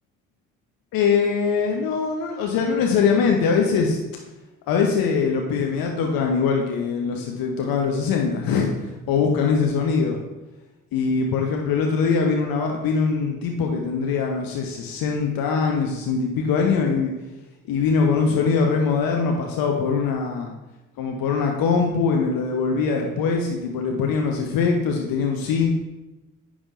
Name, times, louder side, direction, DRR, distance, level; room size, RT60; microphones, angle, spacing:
voice 1, 0.9-4.0 4.7-8.7 9.1-10.2 10.9-17.1 17.7-20.5 21.0-25.7, left 5 dB, 60° left, 2 dB, 1.1 m, -22 dB
9.8 x 3.6 x 5.2 m, 1.0 s
hypercardioid pair, 45°, 39 cm